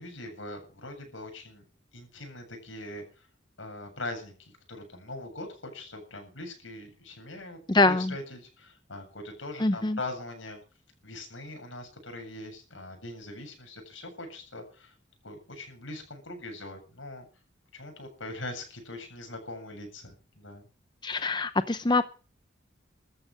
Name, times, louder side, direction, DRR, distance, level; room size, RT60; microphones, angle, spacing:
voice 1, 0.0-1.6 1.9-3.3 3.6-7.6 7.8-10.6 11.0-14.9 15.2-17.2 17.7-20.6, left 2 dB, 85° left, 4 dB, 7.8 m, -41 dB
voice 2, 7.7-8.1 9.6-10.0 21.0-22.0, left 2 dB, 25° left, 12 dB, 0.7 m, -24 dB
14.0 x 10.0 x 7.8 m, 0.37 s
head